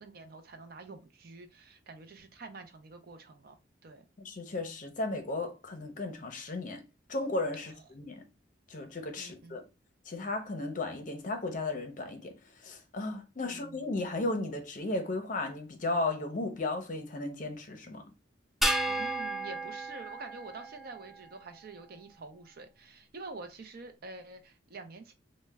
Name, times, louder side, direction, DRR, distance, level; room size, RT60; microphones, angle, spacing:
voice 1, 0.0-3.5 3.8-4.1 7.6-7.7 9.2-9.6 13.4-14.0 18.9-25.1, right 3 dB, 55° right, 0.5 m, -47 dB
voice 2, 4.2-6.8 7.1-8.2 8.7-9.6 10.1-12.3 12.6-18.0, left 2 dB, 45° left, 0.6 m, -35 dB
sound 1, 18.6-21.2, right 1 dB, ahead, 0.3 m, -33 dB
3.2 x 2.1 x 3.3 m
head